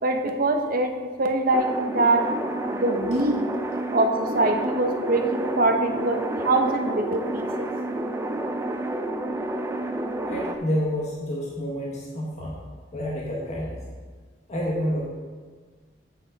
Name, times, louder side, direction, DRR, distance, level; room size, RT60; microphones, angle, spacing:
voice 1, 0.0-2.3 2.7-3.5 3.9-7.7, right 2 dB, 50° right, 4 dB, 0.9 m, -23 dB
sound 1, 1.5-10.6, right 1 dB, 15° right, 0.5 m, -29 dB
voice 2, 10.3-12.6 12.9-13.8 14.5-15.1, equal, 40° left, -3 dB, 1.3 m, -29 dB
8.4 x 7.8 x 4.1 m, 1.5 s
head